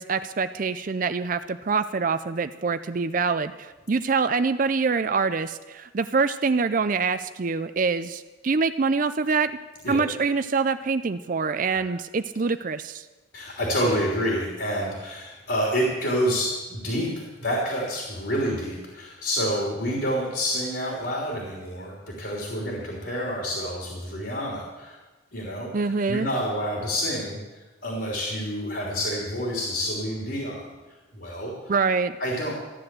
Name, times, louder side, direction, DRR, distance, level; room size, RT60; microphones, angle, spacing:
voice 1, 0.0-9.5 9.9-13.1 25.7-26.3 31.7-32.1, right 4 dB, 45° right, 11 dB, 0.5 m, -25 dB
voice 2, 13.3-25.0 25.3-27.4 27.8-30.6 31.1-31.5 32.2-32.5, equal, 60° left, -2 dB, 3.3 m, -28 dB
14.5 x 10.5 x 7.6 m, 1.2 s
head